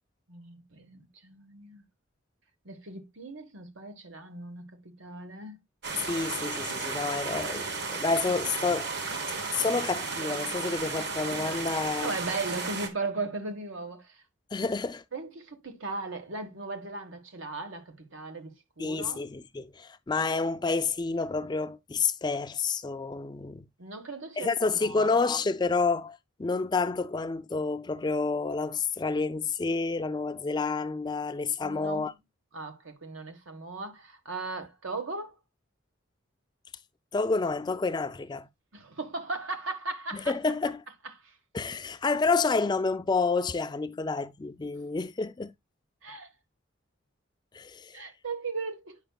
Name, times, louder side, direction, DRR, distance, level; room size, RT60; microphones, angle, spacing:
voice 1, 0.3-1.8 2.6-5.6 12.0-14.2 14.6-14.7 15.1-19.2 23.8-25.2 31.6-32.1 32.5-35.3 38.7-40.3 41.2-41.4 46.0-46.3 47.9-49.0, right 3 dB, 80° right, 1.4 m, -37 dB
sound 1, 5.8-12.9, right 4 dB, 55° right, 1.4 m, -34 dB
voice 2, 6.0-8.9 9.5-12.1 14.5-15.0 18.8-23.7 24.4-32.1 37.1-38.5 40.1-40.8 41.5-45.5 47.5-48.0, left 4 dB, 20° left, 0.3 m, -29 dB
8.9 x 5.8 x 2.3 m
head